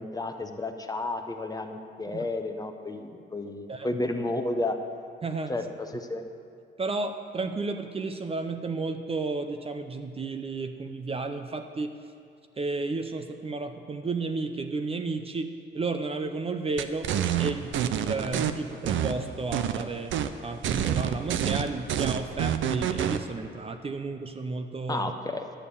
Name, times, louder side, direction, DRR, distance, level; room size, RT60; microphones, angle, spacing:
voice 1, 0.0-4.8 5.5-5.7 5.9-6.2 24.9-25.4, left 2 dB, 20° left, 6 dB, 0.9 m, -32 dB
voice 2, 5.2-5.5 6.8-12.0 12.6-17.1 17.4-25.1, right 3 dB, 30° right, 6 dB, 0.6 m, -32 dB
sound 1, 16.8-18.5 18.9-19.8 20.1-20.3 20.6-23.2, right 10 dB, 75° right, 0.6 m, -27 dB
11.0 x 7.1 x 6.9 m, 2.3 s
cardioid pair, 90°, 20 cm